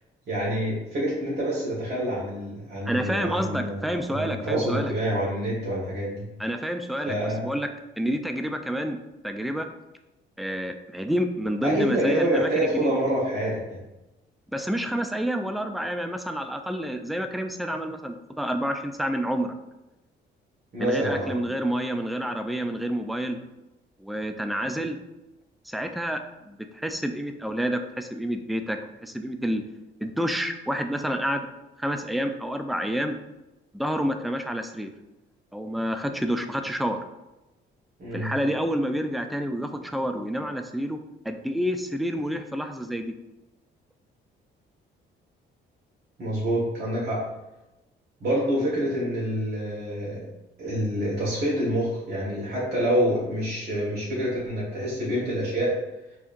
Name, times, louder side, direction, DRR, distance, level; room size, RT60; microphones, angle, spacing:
voice 1, 0.3-6.3 7.1-7.5 11.6-13.8 20.7-21.4 38.0-38.3 46.2-47.2 48.2-50.2 50.6-55.7, equal, 55° right, -8 dB, 1.5 m, -27 dB
voice 2, 2.9-4.9 6.4-7.7 8.0-9.0 9.2-9.7 10.4-12.9 14.5-19.5 20.8-23.4 24.0-25.0 25.7-29.6 30.0-31.5 31.8-33.2 33.7-34.9 35.5-37.0 38.1-41.0 41.3-43.1, equal, ahead, 6 dB, 0.3 m, -28 dB
4.6 x 2.9 x 2.6 m, 0.98 s
cardioid pair, 90°, 20 cm